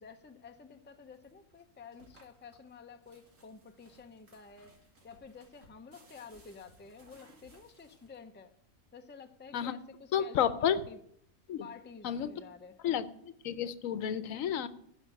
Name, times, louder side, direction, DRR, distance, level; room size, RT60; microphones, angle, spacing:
voice 1, 0.0-4.8 5.0-8.5 8.9-11.0 11.6-12.8, left 5 dB, 15° left, 7 dB, 0.5 m, -51 dB
sound 1, 1.1-8.4, right 2 dB, 70° right, 2.3 m, -62 dB
voice 2, 10.1-10.8 11.5-11.7 12.0-12.3 12.8-14.7, left 9 dB, 80° left, 14 dB, 1.1 m, -31 dB
12.0 x 5.3 x 8.7 m, 0.70 s
omnidirectional pair, 1.4 m